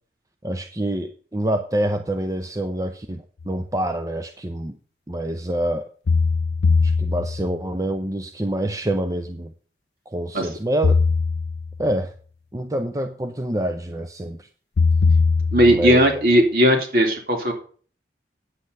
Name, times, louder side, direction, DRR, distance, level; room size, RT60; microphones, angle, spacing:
voice 1, 0.4-4.8 5.1-5.9 6.8-9.5 10.1-11.0 11.8-12.1 12.5-14.5 15.7-16.0, right 1 dB, 20° right, 7 dB, 0.7 m, -26 dB
sound 1, 3.4-3.5 6.1-7.7 10.8-11.9 14.8-16.1, left 4 dB, 70° left, 0.4 m, -20 dB
voice 2, 15.5-17.5, equal, 55° right, 2 dB, 3.3 m, -17 dB
9.8 x 8.3 x 5.4 m, 0.42 s
head